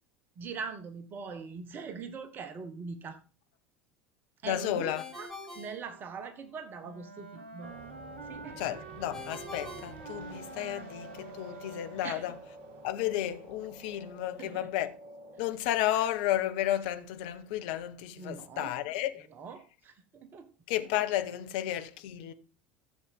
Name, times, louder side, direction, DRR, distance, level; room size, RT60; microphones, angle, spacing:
voice 1, 0.4-3.2 4.4-5.3 5.5-7.7 8.2-8.6 12.0-12.3 14.4-14.7 18.1-18.8 19.3-20.5, right 5 dB, 40° right, 1.4 m, -42 dB
voice 2, 4.4-5.0 8.6-12.3 12.8-14.9 15.4-19.3 20.7-22.3, left 12 dB, 60° left, 1.0 m, -32 dB
Ringtone, 4.9-6.6 9.1-10.8, left 3 dB, 5° left, 6.5 m, -46 dB
Wind instrument woodwind instrument, 6.8-12.2, right 3 dB, 85° right, 1.5 m, -47 dB
sound 1, 7.6-15.5, right 3 dB, 55° right, 2.3 m, -50 dB
14.0 x 7.3 x 3.7 m
figure-of-eight pair, 70°, 6 cm